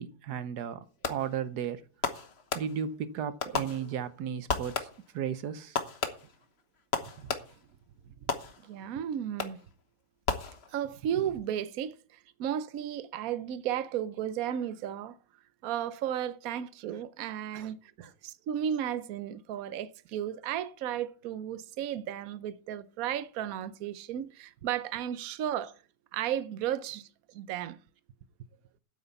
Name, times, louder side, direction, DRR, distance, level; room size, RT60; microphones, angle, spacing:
voice 1, 0.0-1.8 2.5-4.9 5.1-5.8 17.5-17.7 18.0-18.1 25.6-25.7, right 8 dB, 60° right, 1.2 m, -35 dB
Fireworks, 1.0-1.5 2.0-3.0 3.4-4.2 4.5-5.2 5.8-7.7 8.3-8.9 9.4-9.8 10.3-11.0, left 5 dB, 40° left, 1.0 m, -35 dB
voice 2, 8.6-9.6 10.7-15.2 15.6-17.9 18.2-25.7 26.1-27.1 27.3-27.8, right 10 dB, 80° right, 0.7 m, -34 dB
9.2 x 8.3 x 6.9 m
omnidirectional pair, 2.3 m